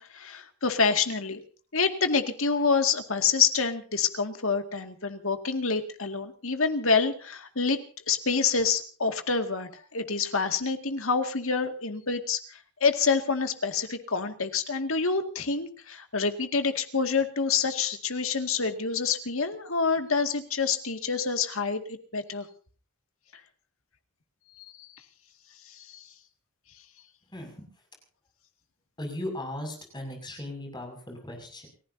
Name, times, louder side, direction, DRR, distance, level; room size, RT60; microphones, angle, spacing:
voice 1, 0.0-1.4 1.7-7.8 8.1-22.5 25.7-26.1, left 5 dB, 65° left, 7 dB, 2.2 m, -27 dB
voice 2, 27.3-27.7 29.0-31.7, left 1 dB, 20° left, 3 dB, 6.4 m, -37 dB
30.0 x 15.5 x 2.8 m, 0.41 s
head